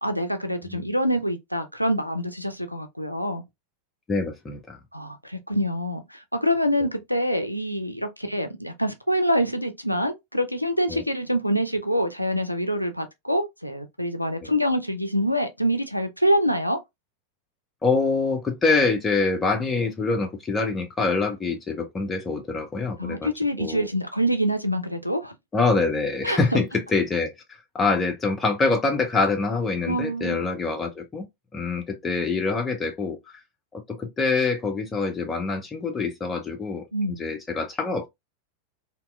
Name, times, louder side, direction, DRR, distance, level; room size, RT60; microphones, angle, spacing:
voice 1, 0.0-3.4 4.9-16.8 23.0-25.3 26.2-26.4 29.9-30.4 36.9-37.2, equal, 90° left, 0.3 m, -25 dB
voice 2, 4.1-4.8 10.9-11.0 17.8-23.3 23.6-23.9 25.5-27.3 27.7-31.3 31.5-33.2 33.7-36.8 37.2-38.1, left 3 dB, 15° left, 0.6 m, -25 dB
2.8 x 2.1 x 2.2 m
figure-of-eight pair, 90°, 0 cm